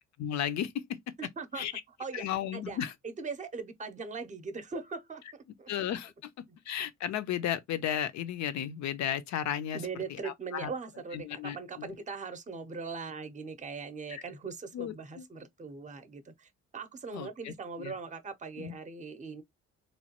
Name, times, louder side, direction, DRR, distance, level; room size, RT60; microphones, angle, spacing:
voice 1, 0.2-0.8 1.5-1.7 2.1-2.9 5.7-6.3 6.6-9.8 10.1-10.7 11.1-11.9 14.1-14.2 14.7-15.3 17.1-17.9 18.6-18.8, left 10 dB, 65° left, 0.5 m, -34 dB
voice 2, 1.2-1.7 2.0-2.3 2.5-2.8 3.0-5.7 9.7-19.4, right 4 dB, 25° right, 0.6 m, -40 dB
3.1 x 2.2 x 2.8 m
cardioid pair, 90°, 30 cm